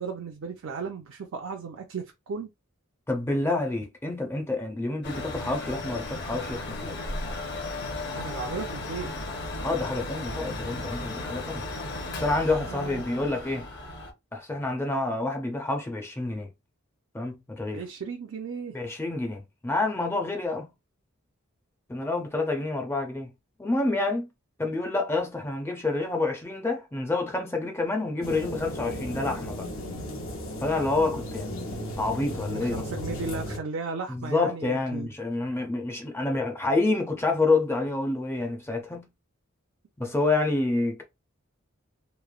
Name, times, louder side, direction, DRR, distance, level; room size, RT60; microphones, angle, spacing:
voice 1, 0.0-2.5 8.1-9.1 12.5-13.0 17.7-18.7 32.5-35.1, right 4 dB, 70° right, 0.4 m, -35 dB
voice 2, 3.1-7.0 9.6-11.6 12.1-13.7 14.3-16.5 17.1-17.8 18.7-20.7 21.9-23.3 23.6-24.3 24.6-29.7 30.6-32.8 34.1-39.1 40.0-41.0, left 2 dB, 10° left, 0.4 m, -28 dB
Mechanical fan, 5.0-14.1, left 2 dB, 55° left, 0.8 m, -35 dB
sound 1, 28.2-33.6, left 1 dB, 85° left, 0.9 m, -35 dB
3.1 x 2.0 x 2.3 m
head